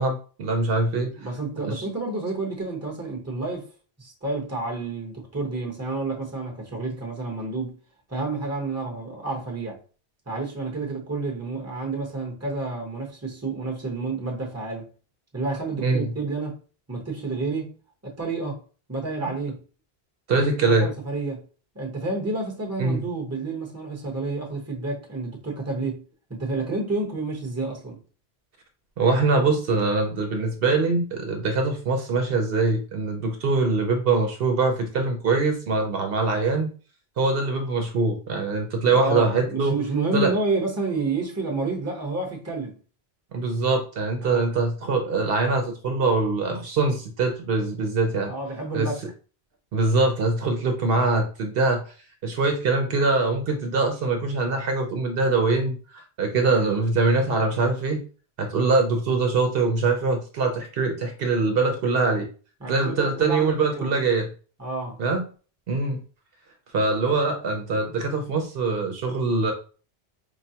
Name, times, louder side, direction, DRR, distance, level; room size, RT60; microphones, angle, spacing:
voice 1, 0.0-1.1 1.6-1.8 15.8-16.1 20.3-20.9 22.8-23.0 29.0-36.7 37.2-39.8 40.1-40.3 43.3-48.3 48.7-48.9 49.7-51.8 52.2-58.0 58.4-62.3 62.6-64.3 65.0-65.2 65.7-66.0 66.7-69.5, right 3 dB, 65° right, 0.8 m, -23 dB
voice 2, 1.0-3.7 4.0-7.8 8.1-9.8 10.3-14.9 15.3-16.6 16.9-17.7 18.0-18.6 18.9-19.6 20.8-21.4 21.7-26.0 26.3-28.0 38.9-42.8 44.2-44.5 48.3-49.0 62.6-63.9 64.6-65.0, right 3 dB, 15° right, 0.9 m, -29 dB
4.8 x 2.1 x 2.8 m
omnidirectional pair, 1.1 m